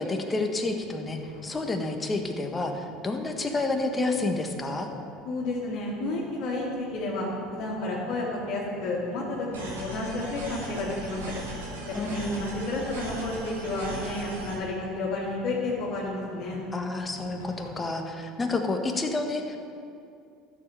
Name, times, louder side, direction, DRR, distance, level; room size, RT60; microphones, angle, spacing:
voice 1, 0.0-4.9 11.9-12.5 16.7-19.6, left 2 dB, 20° left, 4 dB, 1.7 m, -29 dB
sound 1, 0.6-17.7, left 2 dB, 85° left, 2.3 m, -49 dB
voice 2, 5.2-11.2 11.9-16.6, left 2 dB, 60° left, -8 dB, 2.9 m, -31 dB
sound 2, 9.5-14.5, right 1 dB, 85° right, 3.3 m, -38 dB
13.0 x 7.6 x 6.9 m, 2.4 s
hypercardioid pair, 70°, 0 cm